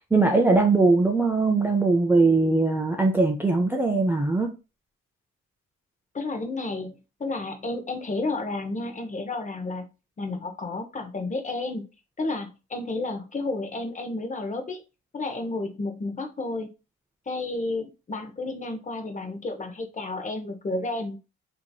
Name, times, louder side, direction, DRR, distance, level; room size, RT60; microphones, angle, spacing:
voice 1, 0.1-4.5, right 3 dB, 5° right, 0.4 m, -21 dB
voice 2, 6.1-9.9 10.2-11.8 12.2-14.8 15.1-16.7 17.3-21.2, left 2 dB, 25° left, 0.7 m, -31 dB
2.9 x 2.6 x 2.2 m
cardioid pair, 90°, 30 cm